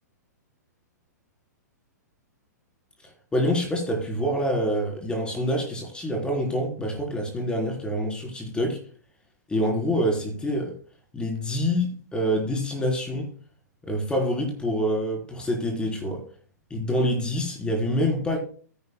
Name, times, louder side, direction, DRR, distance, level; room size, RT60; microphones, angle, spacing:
voice 1, 3.3-8.8 9.5-10.7 11.1-13.3 13.8-16.2 16.7-18.4, equal, 10° left, 3.7 m, -26 dB
16.5 x 10.5 x 2.2 m
figure-of-eight pair, 110°, 10 cm